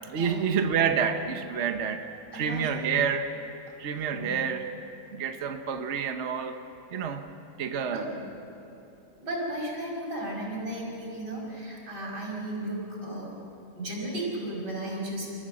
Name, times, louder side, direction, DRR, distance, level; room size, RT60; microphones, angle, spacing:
voice 1, 0.0-2.1 2.3-3.3 3.8-4.7 5.1-6.6 6.9-7.2 7.6-8.0, right 7 dB, 50° right, 6 dB, 1.2 m, -28 dB
voice 2, 2.3-2.7 4.1-4.3 7.9-8.2 9.2-13.3 13.7-15.3, right 1 dB, 90° right, -3 dB, 6.0 m, -34 dB
28.5 x 14.5 x 7.6 m, 2.9 s
omnidirectional pair, 1.8 m